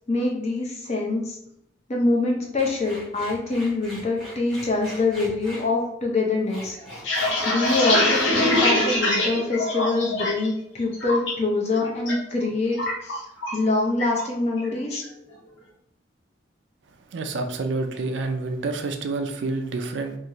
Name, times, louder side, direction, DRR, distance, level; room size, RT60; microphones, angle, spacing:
voice 1, 0.1-1.4 1.9-6.8 7.4-13.3 13.5-15.0, left 3 dB, 35° left, 0 dB, 0.6 m, -25 dB
sound 1, 2.6-5.7 6.3-9.6 9.9-10.3, equal, 5° left, 0.9 m, -41 dB
sound 2, 6.8-10.5 10.8-11.3 11.7-12.1 12.4-13.7 14.0-14.2 14.6-15.0, left 1 dB, 80° left, 0.8 m, -23 dB
voice 2, 17.1-20.2, right 3 dB, 70° right, 6 dB, 0.4 m, -28 dB
2.5 x 2.5 x 2.9 m, 0.75 s
head